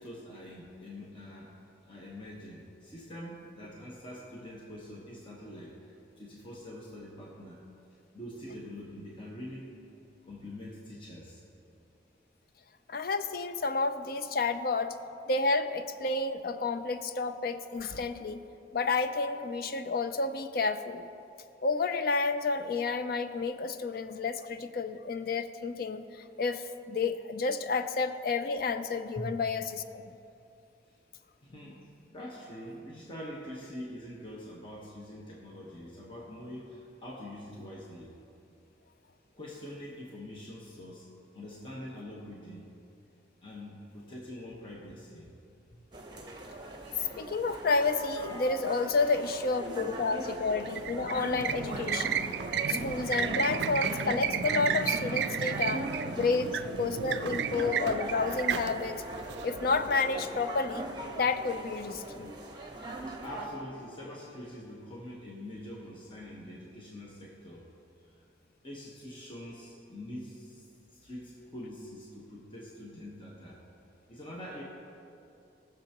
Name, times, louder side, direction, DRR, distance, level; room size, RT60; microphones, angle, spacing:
voice 1, 0.0-1.6 1.8-7.6 8.1-11.4 29.1-29.3 30.9-31.0 31.4-38.1 39.3-41.1 41.3-42.7 43.4-45.3 45.7-45.8 49.0-49.4 50.1-50.4 57.3-57.4 63.1-67.7 68.0-68.2 68.6-73.6 74.1-74.6, left 1 dB, 30° left, -4 dB, 1.2 m, -45 dB
voice 2, 12.9-15.0 15.3-18.4 18.7-21.1 21.6-30.0 47.2-52.2 52.7-55.9 56.2-59.0 59.4-60.9 61.2-62.3, left 4 dB, 55° left, 10 dB, 0.5 m, -30 dB
sound 1, 45.9-63.5, right 2 dB, 25° right, 1.0 m, -40 dB
sound 2, 50.6-59.9, right 8 dB, 70° right, 0.3 m, -33 dB
19.5 x 6.9 x 2.9 m, 2.6 s
head